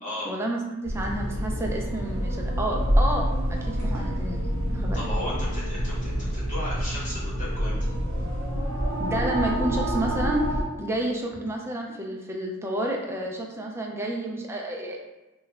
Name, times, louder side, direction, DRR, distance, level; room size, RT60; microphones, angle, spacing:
voice 1, 0.2-3.3 3.6-5.0 9.0-10.5 10.8-15.0, right 1 dB, 10° right, 0 dB, 0.4 m, -30 dB
sound 1, 0.8-10.6, equal, 85° right, 0.9 m, -27 dB
voice 2, 4.9-7.8, left 1 dB, 35° left, -7 dB, 0.9 m, -35 dB
3.0 x 2.2 x 3.5 m, 1.0 s
head